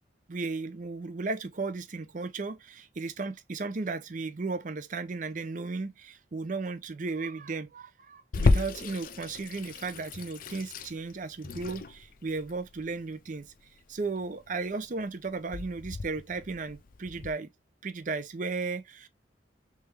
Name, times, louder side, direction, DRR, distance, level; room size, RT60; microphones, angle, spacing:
voice 1, 0.3-13.5 13.9-17.5 17.8-19.1, right 3 dB, 45° right, 0.5 m, -35 dB
Water tap faucet / Sink (filling or washing), 8.3-17.3, left 3 dB, 45° left, 0.4 m, -32 dB
3.3 x 3.2 x 3.3 m
head